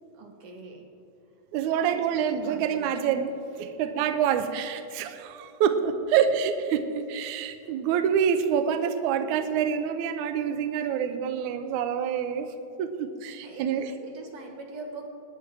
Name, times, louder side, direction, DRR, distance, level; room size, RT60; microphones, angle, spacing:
voice 1, 0.1-0.9 1.7-2.1 2.3-3.2 7.6-7.8 13.4-15.1, right 3 dB, 55° right, 3 dB, 2.0 m, -43 dB
voice 2, 1.5-12.5 12.8-13.9, right 8 dB, 75° right, 9 dB, 2.0 m, -27 dB
20.5 x 9.9 x 4.7 m, 2.8 s
omnidirectional pair, 3.9 m